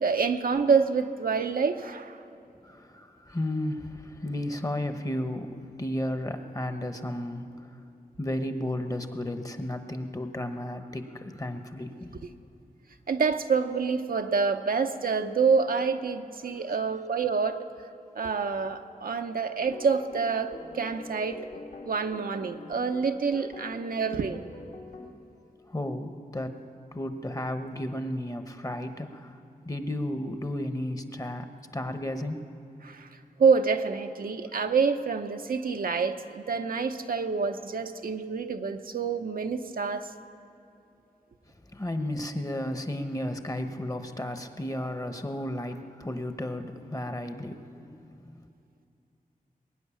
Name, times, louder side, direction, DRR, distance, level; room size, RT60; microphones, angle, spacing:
voice 1, 0.0-2.2 13.1-17.6 18.1-21.5 21.9-24.4 32.8-33.1 33.4-40.1, right 5 dB, 75° right, 6 dB, 0.7 m, -27 dB
voice 2, 2.6-7.7 8.2-12.3 25.7-26.5 26.9-29.4 29.6-31.5 31.7-32.4 41.7-48.5, left 1 dB, 25° left, 8 dB, 1.0 m, -33 dB
sound 1, 19.7-25.1, left 2 dB, 65° left, 1.8 m, -45 dB
21.5 x 9.5 x 7.1 m, 2.7 s
wide cardioid pair, 80°, 15 cm